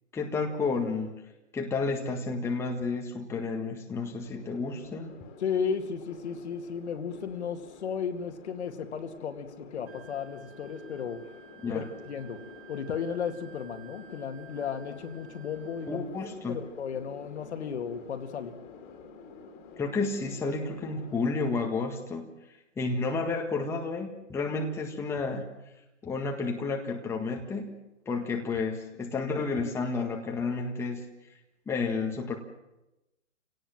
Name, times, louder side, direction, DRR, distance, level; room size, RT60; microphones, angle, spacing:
voice 1, 0.1-1.2 1.5-5.1 11.6-11.8 15.9-16.6 19.8-22.3 22.8-25.5 26.0-31.1 31.7-32.3, left 4 dB, 5° left, 1 dB, 1.7 m, -31 dB
sound 1, 4.2-21.4, left 4 dB, 25° left, 2.8 m, -49 dB
voice 2, 5.4-11.2 11.7-12.4 12.7-16.0 16.5-18.5, left 7 dB, 55° left, 6 dB, 2.4 m, -34 dB
Wind instrument woodwind instrument, 9.9-16.1, right 10 dB, 20° right, 2.0 m, -54 dB
29.0 x 18.0 x 7.6 m, 0.95 s
hypercardioid pair, 150°, 39 cm